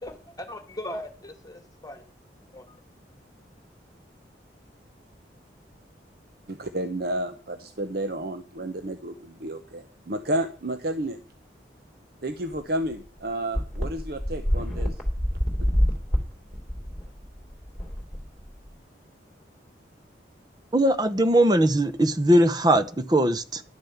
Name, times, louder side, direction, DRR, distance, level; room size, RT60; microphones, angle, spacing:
voice 1, 0.0-2.0 2.5-2.7, left 1 dB, 20° left, 8 dB, 1.7 m, -39 dB
voice 2, 6.5-11.2 12.2-15.0, right 1 dB, 60° right, 8 dB, 0.9 m, -31 dB
sound 1, 12.5-12.6 12.9-13.0 13.5-18.7, equal, ahead, 3.2 m, -27 dB
voice 3, 20.7-23.6, right 1 dB, 25° right, 12 dB, 0.7 m, -20 dB
11.5 x 6.9 x 7.1 m, 0.39 s
head